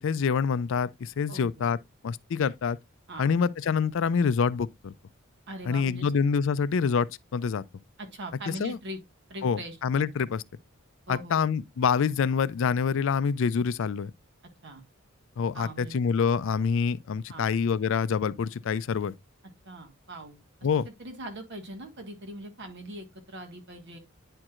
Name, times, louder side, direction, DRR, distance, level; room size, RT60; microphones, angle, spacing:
voice 1, 0.0-1.8 2.0-2.8 3.2-4.9 5.7-7.6 8.5-8.8 9.4-10.4 11.1-14.1 15.4-19.1 20.6-20.9, left 6 dB, 65° left, 0.4 m, -26 dB
voice 2, 1.3-1.7 3.1-3.3 5.5-6.1 8.0-9.0 9.3-10.1 11.1-11.5 14.6-14.8 15.5-16.0 17.3-17.5 19.6-20.4 20.8-24.0, right 1 dB, 55° right, 1.6 m, -41 dB
9.7 x 4.5 x 2.4 m
head